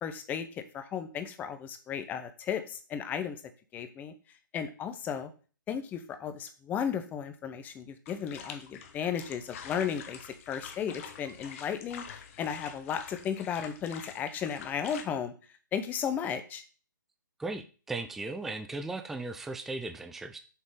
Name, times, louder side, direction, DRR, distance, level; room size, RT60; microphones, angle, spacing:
voice 1, 0.0-3.4 3.7-4.1 4.5-5.3 5.7-15.3 15.7-16.6, left 8 dB, 15° left, 10 dB, 0.8 m, -35 dB
sound 1, 8.1-15.0, left 7 dB, 40° left, 1.1 m, -46 dB
voice 2, 17.4-20.4, right 2 dB, 5° right, 8 dB, 0.3 m, -37 dB
7.2 x 4.2 x 5.1 m, 0.37 s
hypercardioid pair, 140°, 11 cm